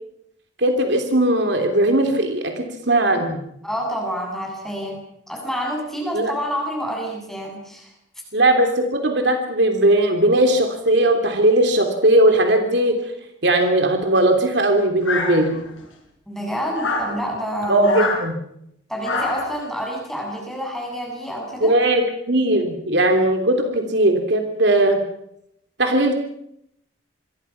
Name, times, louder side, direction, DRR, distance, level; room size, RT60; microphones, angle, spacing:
voice 1, 0.6-3.4 6.1-6.3 8.3-13.0 13.4-15.6 17.7-18.3 21.6-22.0 22.3-25.0 25.8-26.1, right 1 dB, 60° right, 5 dB, 3.2 m, -18 dB
voice 2, 3.6-5.0 5.3-7.9 16.3-18.1 18.9-21.8, equal, ahead, 0 dB, 7.7 m, -28 dB
sound 1, 15.0-15.8 16.7-17.1 17.8-18.2 19.0-19.5, left 3 dB, 70° left, 7.2 m, -25 dB
28.0 x 22.5 x 5.9 m, 0.76 s
head